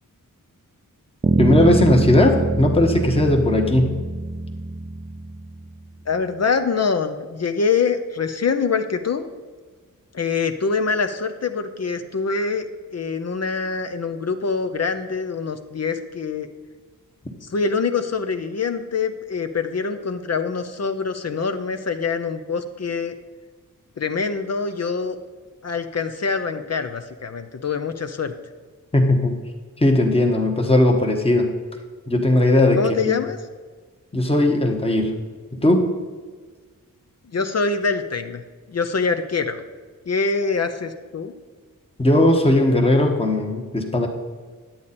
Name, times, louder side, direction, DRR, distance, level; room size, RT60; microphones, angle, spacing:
Bass guitar, 1.2-5.7, right 2 dB, 20° right, 0.4 m, -24 dB
voice 1, 1.4-4.0 28.9-29.3 29.8-31.5 32.1-33.1 34.1-35.1 35.6-35.9 42.0-44.1, left 1 dB, 15° left, 2 dB, 1.1 m, -18 dB
voice 2, 6.1-9.3 10.1-12.7 12.9-16.5 17.4-23.1 24.0-25.2 25.6-28.3 32.8-33.4 37.3-38.4 38.7-39.6 40.1-41.3, left 5 dB, 50° left, 8 dB, 0.6 m, -24 dB
10.5 x 8.6 x 4.2 m, 1.5 s
wide cardioid pair, 120°, 34 cm